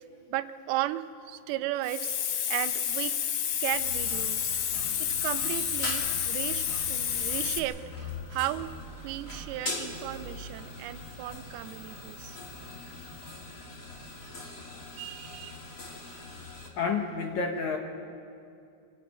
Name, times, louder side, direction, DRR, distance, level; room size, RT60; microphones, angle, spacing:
voice 1, 0.3-2.1 2.5-3.2 3.6-4.5 5.2-8.7 9.0-12.4 15.0-15.6, right 14 dB, 85° right, 12 dB, 2.6 m, -35 dB
Hiss, 1.8-7.6, left 9 dB, 80° left, 1.4 m, -30 dB
sound 1, 3.7-16.7, left 1 dB, 30° left, 1.9 m, -41 dB
voice 2, 16.8-17.8, left 5 dB, 65° left, 3 dB, 2.0 m, -29 dB
25.5 x 11.5 x 9.1 m, 2.4 s
omnidirectional pair, 4.4 m